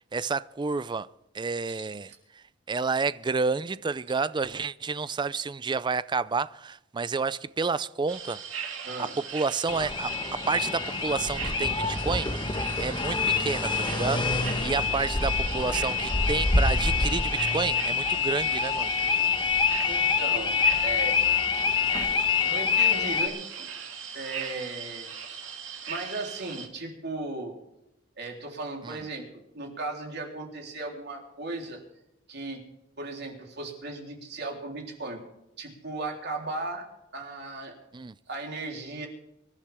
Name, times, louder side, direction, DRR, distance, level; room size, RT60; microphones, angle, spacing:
voice 1, 0.1-1.1 1.3-2.1 2.7-8.4 9.0-9.1 9.3-12.3 12.8-14.3 14.6-18.9 28.8-29.0 37.9-38.1, right 4 dB, 25° right, 0.4 m, -30 dB
voice 2, 1.7-2.2 8.8-9.1 15.0-15.1 19.9-20.6 20.8-21.2 21.8-22.1 22.4-23.7 24.1-25.1 25.9-27.5 28.2-29.3 29.5-31.8 32.3-32.6 33.0-35.2 35.6-36.8 37.1-37.8 38.3-39.1, right 2 dB, 60° right, 3.6 m, -36 dB
sound 1, 8.1-26.7, right 7 dB, 85° right, 2.7 m, -39 dB
sound 2, 9.7-23.3, left 5 dB, 25° left, 1.2 m, -26 dB
25.0 x 11.5 x 3.6 m
head